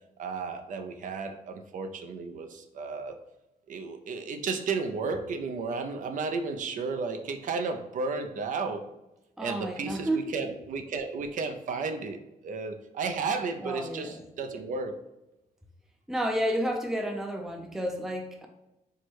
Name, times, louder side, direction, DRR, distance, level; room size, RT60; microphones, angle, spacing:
voice 1, 0.2-3.2 3.7-8.9 9.4-12.2 12.4-15.0, right 4 dB, 60° right, 6 dB, 0.5 m, -33 dB
voice 2, 9.4-10.3 13.6-14.2 16.1-18.5, right 1 dB, 5° right, 3 dB, 0.4 m, -31 dB
4.5 x 2.1 x 4.5 m, 0.92 s
wide cardioid pair, 170°, 15 cm